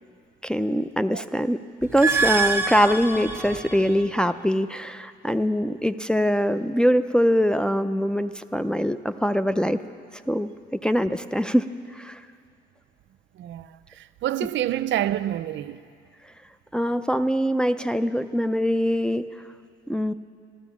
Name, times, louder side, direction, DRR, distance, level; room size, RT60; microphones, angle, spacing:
voice 1, 0.4-9.8 10.3-11.7 11.9-12.2 16.7-19.3 19.9-20.1, equal, 5° left, 0.4 m, -23 dB
sound 1, 1.8-4.1, right 4 dB, 10° right, 1.2 m, -26 dB
voice 2, 13.3-15.8, right 12 dB, 70° right, 0.5 m, -28 dB
14.0 x 12.5 x 7.1 m
cardioid pair, 90°, 20 cm